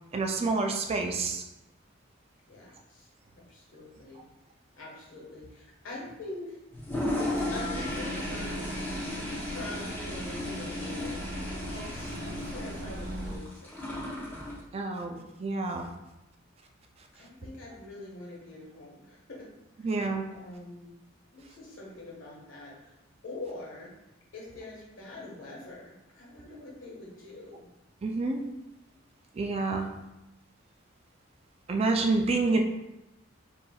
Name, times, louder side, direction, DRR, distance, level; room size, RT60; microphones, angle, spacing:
voice 1, 0.1-1.4 14.7-15.9 19.8-20.2 28.0-28.4 29.4-29.9 31.7-32.6, right 3 dB, 30° right, 3 dB, 0.3 m, -28 dB
voice 2, 2.5-3.1 3.5-4.2 4.7-6.6 7.5-8.9 9.4-11.2 11.7-13.7 17.1-19.5 19.8-19.9 20.3-20.9 21.3-22.9 23.2-23.9 24.3-27.7, left 2 dB, 85° left, -4 dB, 1.4 m, -44 dB
Toilet flush, 6.7-14.6, left 1 dB, 10° left, 0.7 m, -35 dB
sound 1, 7.3-13.4, right 1 dB, 60° right, 0.8 m, -39 dB
5.5 x 2.7 x 2.3 m, 0.95 s
head